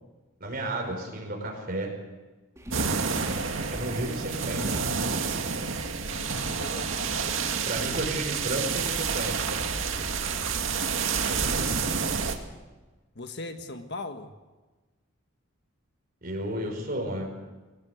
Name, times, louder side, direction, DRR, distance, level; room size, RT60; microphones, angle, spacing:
voice 1, 0.4-1.9 3.7-4.6 7.6-8.9 9.1-9.7 16.2-17.3, right 1 dB, 45° right, 1 dB, 5.2 m, -32 dB
sound 1, 2.6-12.0, equal, 15° right, 3.3 m, -41 dB
sound 2, 2.7-12.4, right 5 dB, 75° right, 2.2 m, -29 dB
voice 2, 2.9-3.3 4.3-4.6 6.1-7.5 11.1-11.7 13.1-14.3, left 2 dB, 55° left, 7 dB, 1.6 m, -41 dB
22.5 x 19.0 x 8.1 m, 1.2 s
head